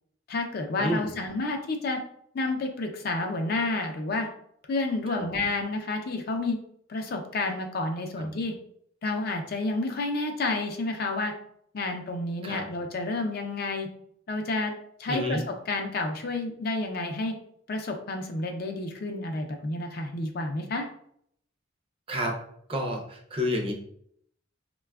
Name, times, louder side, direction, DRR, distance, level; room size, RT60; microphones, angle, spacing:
voice 1, 0.3-2.0 2.3-4.3 4.7-6.6 6.9-8.5 9.0-11.3 11.7-13.9 14.3-14.7 15.0-17.3 17.7-20.9, left 2 dB, 50° left, 4 dB, 0.4 m, -30 dB
voice 2, 0.8-1.1 5.1-5.2 12.4-12.7 15.1-15.4 22.1-22.4 22.7-23.7, equal, 30° right, 2 dB, 0.5 m, -29 dB
4.0 x 2.2 x 2.2 m, 0.68 s
head